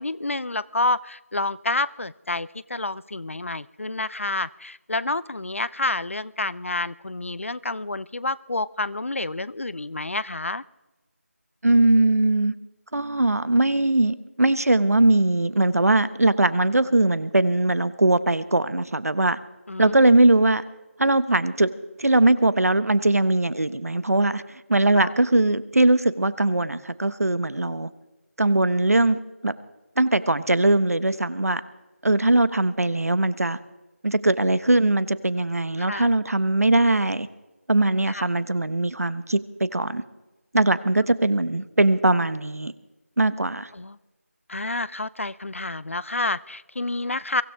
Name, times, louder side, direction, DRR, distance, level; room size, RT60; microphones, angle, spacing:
voice 1, 0.0-10.6 19.7-19.9 24.9-25.1 35.8-36.1 38.1-38.3 43.7-44.0 44.5-47.4, left 2 dB, 60° left, 19 dB, 0.6 m, -29 dB
voice 2, 11.6-12.5 12.9-19.4 19.8-20.6 21.0-21.7 22.0-24.4 24.7-27.9 28.4-29.5 30.0-31.6 32.0-33.6 34.0-37.3 37.7-40.0 40.5-42.7 43.2-43.7, right 2 dB, 80° right, 15 dB, 1.2 m, -20 dB
23.5 x 16.5 x 3.6 m, 1.1 s
figure-of-eight pair, 175°, 8 cm